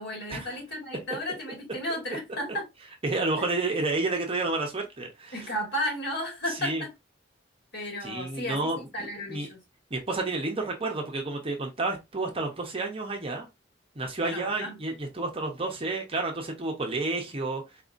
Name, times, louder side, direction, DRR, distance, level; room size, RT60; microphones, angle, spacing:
voice 1, 0.0-2.7 5.3-6.9 7.7-9.6 14.2-14.8, left 1 dB, 60° left, 2.0 m, -34 dB
voice 2, 3.0-5.5 6.5-6.8 8.0-9.5 9.9-13.5 14.0-17.6, right 2 dB, 30° right, 0.8 m, -30 dB
4.1 x 2.7 x 2.5 m
head